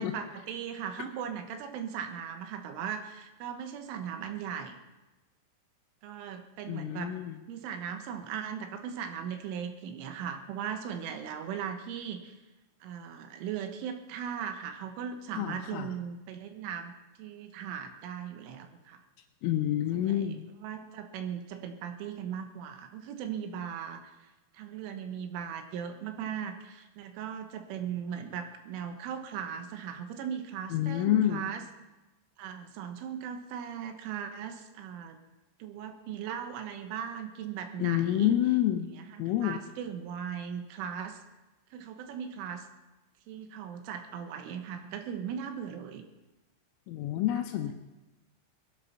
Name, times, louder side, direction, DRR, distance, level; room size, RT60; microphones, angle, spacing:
voice 1, 0.0-4.8 6.0-7.1 7.5-12.4 12.8-16.9 17.2-19.0 19.9-20.3 20.6-24.2 24.5-31.7 32.4-35.2 35.6-38.4 39.0-41.2 41.7-42.7 43.3-46.0, right 8 dB, 75° right, 7 dB, 3.5 m, -38 dB
voice 2, 6.7-7.4 15.4-15.9 19.4-20.5 30.7-31.5 37.8-38.9 39.2-39.6 46.9-47.7, left 12 dB, 80° left, 2 dB, 3.3 m, -28 dB
19.0 x 12.0 x 5.8 m, 1.1 s
omnidirectional pair, 6.0 m